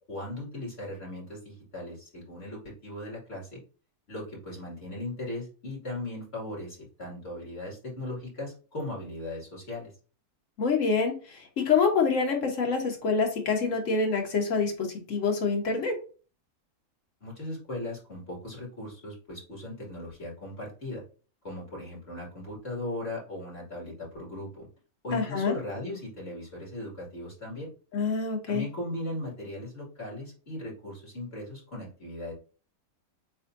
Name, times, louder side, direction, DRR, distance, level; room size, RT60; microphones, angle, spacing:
voice 1, 0.1-3.6 4.1-9.9 17.2-21.0 21.4-24.7 25.0-27.7 28.5-32.3, left 1 dB, 40° left, -4 dB, 2.8 m, -38 dB
voice 2, 10.6-11.1 11.6-14.7 15.1-15.9 25.1-25.5 27.9-28.6, left 5 dB, 60° left, 2 dB, 1.5 m, -26 dB
7.4 x 2.7 x 2.6 m, 0.37 s
omnidirectional pair, 1.6 m